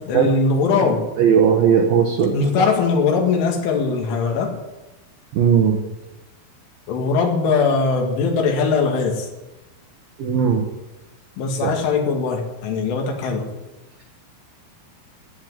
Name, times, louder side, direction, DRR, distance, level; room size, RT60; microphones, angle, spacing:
voice 1, 0.0-1.0 2.3-4.5 6.9-9.3 11.4-13.5, left 4 dB, 75° left, 3 dB, 4.3 m, -20 dB
voice 2, 1.2-2.4 5.3-5.8 10.2-10.7 11.6-11.7, right 7 dB, 70° right, 2 dB, 2.4 m, -17 dB
14.5 x 8.9 x 9.4 m, 1.0 s
omnidirectional pair, 5.9 m